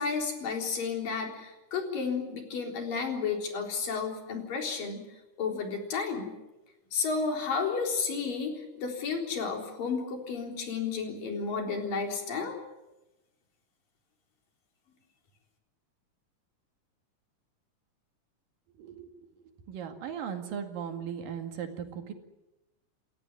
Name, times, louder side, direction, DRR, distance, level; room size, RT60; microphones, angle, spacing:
voice 1, 0.0-5.1 5.4-6.3 6.9-12.6, left 5 dB, 85° left, 2 dB, 5.6 m, -32 dB
voice 2, 18.8-19.1 19.7-22.1, right 8 dB, 90° right, 5 dB, 3.9 m, -37 dB
29.0 x 13.5 x 9.8 m, 1.0 s
omnidirectional pair, 3.8 m